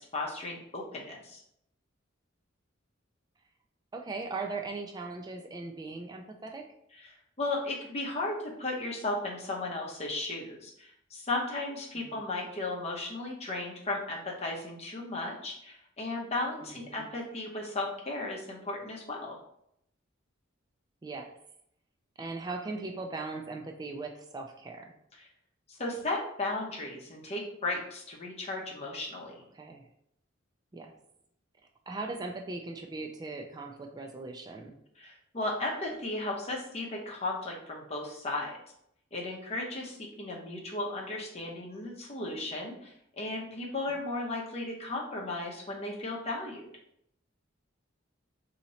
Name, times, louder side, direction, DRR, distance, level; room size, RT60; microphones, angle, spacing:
voice 1, 0.0-1.4 7.0-19.4 25.2-25.3 25.7-29.4 35.0-38.5 39.1-46.7, left 2 dB, 30° left, -2 dB, 0.8 m, -35 dB
voice 2, 3.9-6.7 12.1-12.2 16.6-17.1 21.0-21.4 22.2-24.9 29.5-29.9 30.7-30.9 31.9-34.7 43.9-44.0, right 3 dB, 20° right, 3 dB, 0.3 m, -39 dB
2.9 x 2.8 x 4.1 m, 0.73 s
head